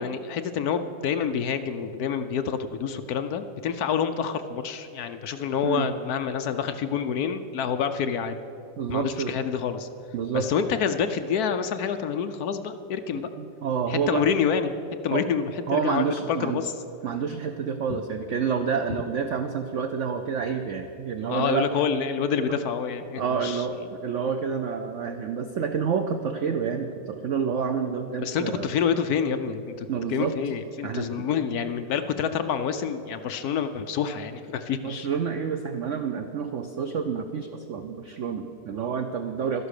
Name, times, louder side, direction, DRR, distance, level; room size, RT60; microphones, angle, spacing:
voice 1, 0.0-8.3 8.9-9.9 10.3-13.3 13.9-14.8 15.0-16.1 16.4-16.7 17.9-18.0 21.3-23.6 28.2-35.1, left 7 dB, 70° left, 9 dB, 1.0 m, -27 dB
voice 2, 8.8-9.3 10.1-10.5 13.1-14.3 15.1-15.2 15.7-16.6 17.0-21.7 22.5-22.6 23.2-28.7 29.9-30.3 30.8-31.1 34.8-39.7, right 6 dB, 70° right, 7 dB, 0.7 m, -28 dB
13.0 x 11.0 x 6.5 m, 2.9 s
omnidirectional pair, 2.0 m